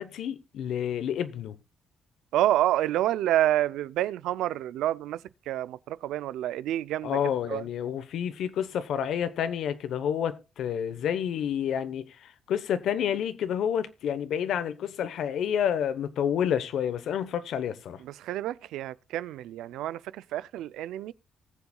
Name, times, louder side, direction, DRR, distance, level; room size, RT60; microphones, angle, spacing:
voice 1, 0.0-1.6 7.0-12.0 12.5-18.0, left 9 dB, 75° left, 0.9 m, -29 dB
voice 2, 2.3-5.2 5.5-7.2 7.5-7.7 18.0-21.1, right 13 dB, 90° right, 0.4 m, -28 dB
19.0 x 7.1 x 2.3 m
cardioid pair, 90°, 0 cm